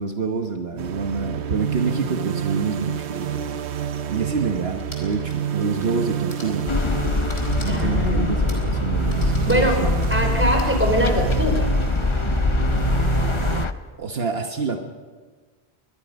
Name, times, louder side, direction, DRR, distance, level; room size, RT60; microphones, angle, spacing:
voice 1, 0.0-3.4 4.1-6.8 7.6-9.9 14.0-14.8, right 5 dB, 70° right, 4 dB, 1.4 m, -27 dB
sound 1, 0.8-13.7, right 9 dB, 90° right, 1.1 m, -28 dB
sound 2, 4.7-6.0 6.3-6.6 7.3-8.0 8.5-8.7 9.1-10.8, left 1 dB, 80° left, 4.2 m, -42 dB
sound 3, 6.7-13.7, left 3 dB, 30° left, 0.7 m, -23 dB
voice 2, 7.7-8.5 9.5-9.8 10.1-11.7 12.7-13.0, equal, 10° right, 2 dB, 4.1 m, -23 dB
23.5 x 21.0 x 5.2 m, 1.4 s
omnidirectional pair, 1.1 m